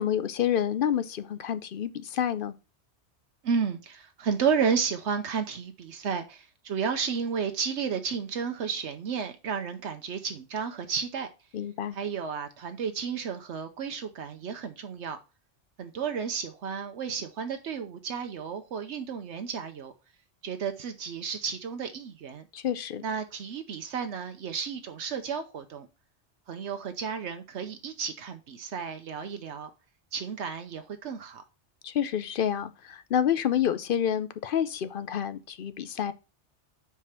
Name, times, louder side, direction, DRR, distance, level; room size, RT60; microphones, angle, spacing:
voice 1, 0.0-2.6 11.5-12.0 22.5-23.0 31.8-36.1, left 9 dB, 55° left, 0.7 m, -28 dB
voice 2, 3.4-11.3 11.9-15.2 15.8-19.9 20.4-22.5 23.0-25.9 26.5-29.7 30.1-31.4, right 6 dB, 75° right, 1.0 m, -32 dB
5.6 x 4.9 x 5.6 m
omnidirectional pair, 1.2 m